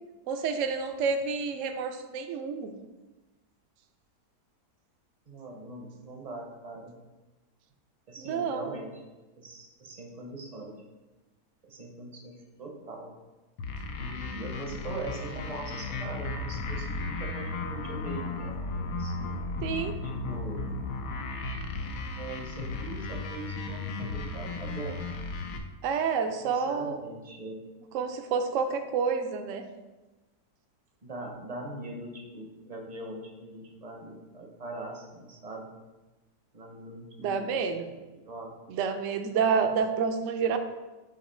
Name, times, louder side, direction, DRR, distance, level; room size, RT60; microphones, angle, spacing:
voice 1, 0.3-2.7 8.2-8.8 19.6-19.9 25.8-27.0 27.9-29.6 37.2-37.9 38.7-40.6, right 5 dB, 65° right, 7 dB, 0.8 m, -29 dB
voice 2, 5.3-7.0 8.1-9.0 9.4-10.8 11.6-13.1 14.0-19.4 20.3-20.6 22.2-25.0 26.2-27.6 31.0-35.7 36.5-37.7 38.2-38.6, right 2 dB, 35° right, 1 dB, 0.6 m, -41 dB
sound 1, 13.6-25.6, left 3 dB, 80° left, 1.2 m, -35 dB
7.9 x 2.9 x 4.3 m, 1.1 s
omnidirectional pair, 1.7 m